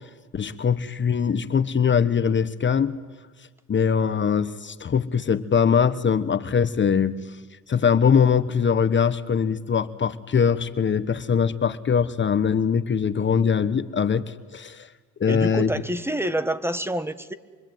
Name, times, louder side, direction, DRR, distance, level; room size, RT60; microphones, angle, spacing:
voice 1, 0.3-2.9 3.7-7.2 7.7-14.9 15.2-15.7, left 7 dB, 40° left, 13 dB, 1.1 m, -22 dB
voice 2, 15.3-17.3, right 1 dB, 10° right, 12 dB, 1.5 m, -27 dB
25.5 x 24.0 x 9.3 m, 1.4 s
cardioid pair, 90°, 30 cm